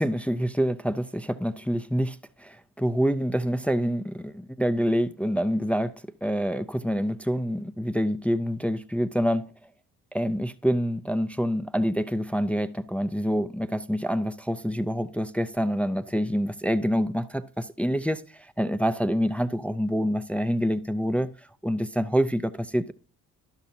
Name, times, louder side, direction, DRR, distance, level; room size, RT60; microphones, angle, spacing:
voice 1, 0.0-5.9 6.2-9.5 10.1-21.3 21.6-22.9, equal, 5° left, 0.3 m, -26 dB
12.0 x 5.8 x 2.7 m
figure-of-eight pair, 40°, 43 cm